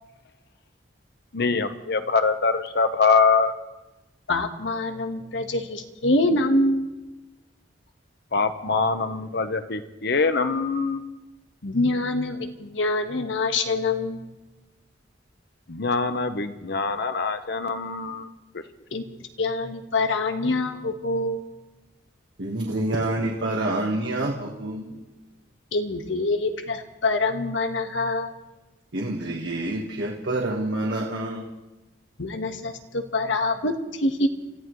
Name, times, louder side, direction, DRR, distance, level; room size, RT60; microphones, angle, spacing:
voice 1, 1.3-3.5 8.3-11.0 15.7-18.3 18.5-18.6, left 4 dB, 65° left, 9 dB, 1.1 m, -23 dB
voice 2, 4.3-6.9 11.6-14.2 18.9-19.0 19.4-21.4 25.7-28.3 32.2-33.8 34.0-34.3, left 2 dB, 90° left, 6 dB, 1.4 m, -25 dB
voice 3, 22.4-24.8 28.9-31.4, right 2 dB, 70° right, -1 dB, 1.5 m, -27 dB
29.5 x 14.5 x 3.2 m, 1.1 s
head